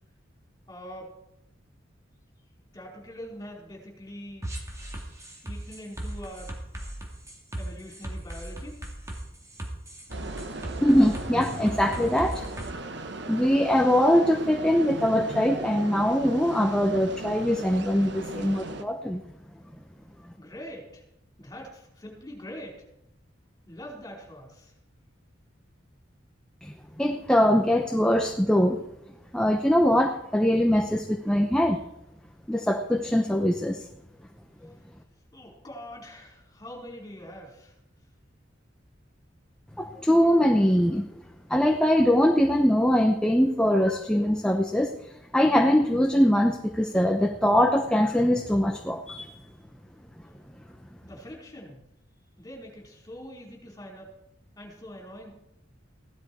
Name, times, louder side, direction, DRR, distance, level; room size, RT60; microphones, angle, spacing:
voice 1, 0.7-1.1 2.7-4.5 5.4-6.6 7.5-8.8 20.4-21.0 21.4-22.8 23.7-24.7 35.3-37.7 51.0-51.8 52.4-54.1 54.5-55.5, equal, 20° left, -2 dB, 4.8 m, -43 dB
sound 1, 4.4-12.7, right 1 dB, 15° right, 2.4 m, -37 dB
sound 2, 10.1-18.8, right 2 dB, 65° right, 1.1 m, -38 dB
voice 2, 10.8-12.4 13.3-19.2 26.6-28.8 29.3-31.8 32.5-33.8 39.8-41.1 41.5-44.9 45.3-49.3, equal, 5° left, 3 dB, 0.9 m, -22 dB
16.5 x 12.0 x 4.7 m, 0.83 s
head